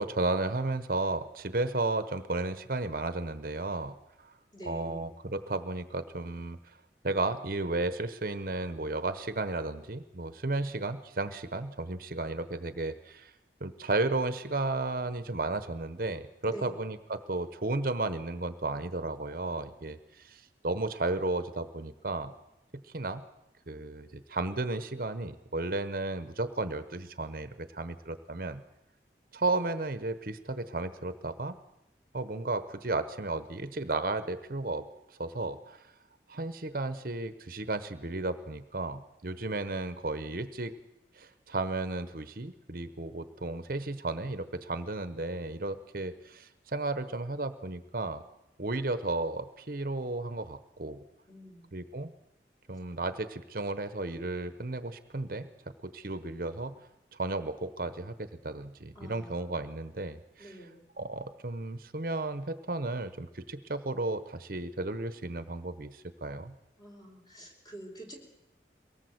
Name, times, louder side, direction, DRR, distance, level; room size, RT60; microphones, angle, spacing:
voice 1, 0.0-4.3 4.7-6.6 7.0-13.3 13.6-22.3 22.9-23.2 23.7-28.6 29.3-31.5 32.1-34.9 35.2-35.9 36.3-40.7 41.2-48.2 48.6-51.0 51.7-52.1 52.7-55.5 55.8-56.8 57.1-60.6 61.0-66.5, right 2 dB, 55° right, 11 dB, 1.0 m, -33 dB
voice 2, 4.5-5.1 16.4-16.8 51.3-51.7 58.9-59.6 60.4-60.8 66.8-68.2, right 1 dB, 25° left, 2 dB, 4.4 m, -46 dB
23.0 x 18.5 x 8.0 m, 0.92 s
head